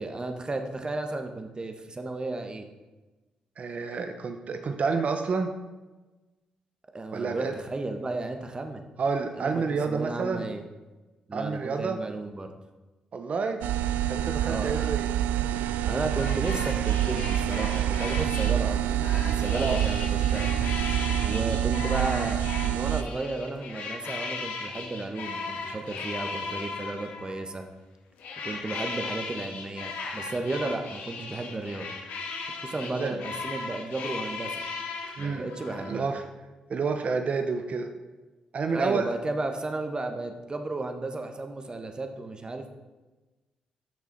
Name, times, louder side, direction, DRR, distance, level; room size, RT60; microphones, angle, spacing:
voice 1, 0.0-2.7 6.9-8.9 9.4-10.6 11.3-12.5 14.4-14.9 15.8-18.8 19.1-20.5 20.8-27.6 28.4-31.9 32.5-34.6 35.2-36.1 38.7-42.7, right 2 dB, 30° right, 6 dB, 1.2 m, -34 dB
voice 2, 3.6-5.5 7.1-7.5 9.0-10.4 11.3-12.0 13.1-13.6 14.1-15.1 19.5-19.8 32.8-33.2 35.2-35.5 35.8-36.2 36.7-37.9 38.5-39.0, right 4 dB, 55° right, 6 dB, 0.8 m, -29 dB
sound 1, 13.6-23.0, right 11 dB, 80° right, 0.3 m, -27 dB
sound 2, 16.2-27.5 28.2-36.0, left 4 dB, 75° left, 1.1 m, -37 dB
8.7 x 6.3 x 4.1 m, 1.2 s
hypercardioid pair, 45°, 3 cm